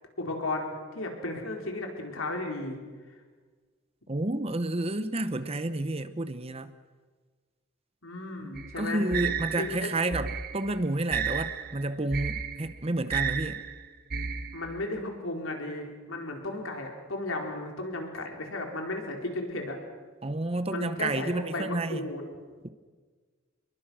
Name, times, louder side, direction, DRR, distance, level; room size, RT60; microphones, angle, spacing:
voice 1, 0.2-2.8 8.0-9.1 9.6-9.9 14.5-19.8 20.7-22.2, left 2 dB, 85° left, 2 dB, 4.3 m, -34 dB
voice 2, 4.1-6.7 8.5-13.6 20.2-22.1 22.6-22.7, right 2 dB, 30° right, 11 dB, 0.9 m, -30 dB
sound 1, 8.6-14.9, right 6 dB, 45° right, 1.2 m, -33 dB
27.5 x 22.0 x 6.3 m, 1.5 s
head